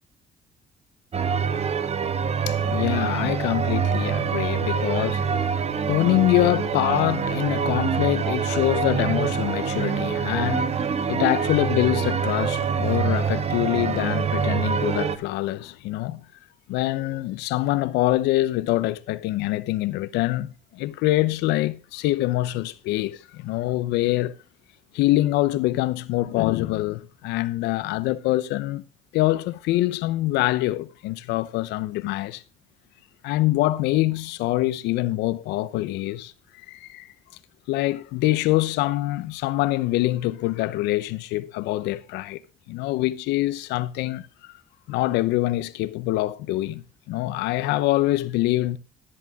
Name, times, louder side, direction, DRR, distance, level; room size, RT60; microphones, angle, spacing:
sound 1, 1.1-15.2, right 6 dB, 40° right, 1.1 m, -25 dB
voice 1, 2.5-16.2 16.7-24.4 24.9-28.8 29.1-32.4 33.2-37.1 37.7-42.4 42.7-44.5 44.9-48.8, left 17 dB, 90° left, 0.8 m, -25 dB
12.5 x 11.0 x 3.6 m
cardioid pair, 110°, 17 cm